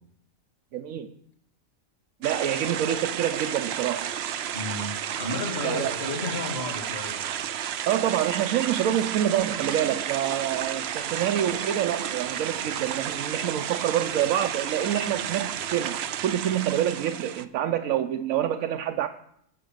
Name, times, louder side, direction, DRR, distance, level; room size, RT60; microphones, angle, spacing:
voice 1, 0.7-1.1 2.2-4.1 5.6-5.9 7.9-19.1, right 10 dB, 85° right, 1.0 m, -27 dB
sound 1, 2.2-17.5, right 9 dB, 60° right, 0.7 m, -32 dB
voice 2, 4.5-7.3, left 1 dB, 50° left, 2.4 m, -32 dB
15.0 x 5.9 x 6.5 m
omnidirectional pair, 1.4 m